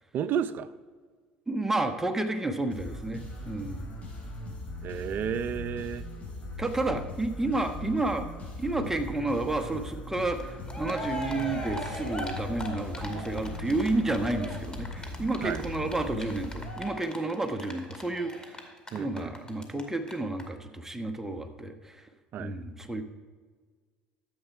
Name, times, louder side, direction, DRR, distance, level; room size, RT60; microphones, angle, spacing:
voice 1, 0.1-0.7 4.8-6.1 15.4-15.6 18.9-19.3 22.3-22.5, right 8 dB, 50° right, 14 dB, 0.6 m, -32 dB
voice 2, 1.5-3.8 6.6-8.3 8.6-22.1 22.4-23.0, right 2 dB, 10° right, 6 dB, 1.2 m, -31 dB
sound 1, 2.7-17.3, left 2 dB, 35° left, 3.7 m, -40 dB
Cheering, 10.4-10.5 10.7-19.8 20.1-20.2 20.4-20.5, equal, 20° left, 2.2 m, -39 dB
12.5 x 8.3 x 4.6 m, 1.5 s
hypercardioid pair, 75°, 4 cm